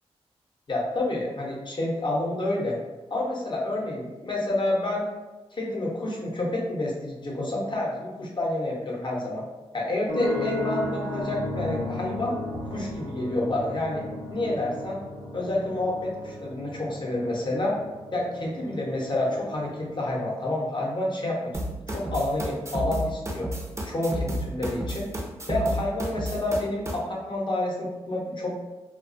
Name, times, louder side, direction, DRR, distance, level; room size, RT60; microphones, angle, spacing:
voice 1, 0.7-2.8 3.1-5.1 5.5-9.4 9.7-12.4 12.7-14.0 14.3-15.0 15.3-17.8 18.1-21.5 21.9-23.5 23.9-25.1 25.5-28.6, left 1 dB, 45° left, -3 dB, 0.8 m, -28 dB
sound 1, 10.1-20.1, left 1 dB, 75° right, 0.9 m, -35 dB
sound 2, 21.5-27.0, right 1 dB, 25° right, 0.5 m, -31 dB
2.3 x 2.3 x 2.5 m, 1.2 s
supercardioid pair, 45°, 11 cm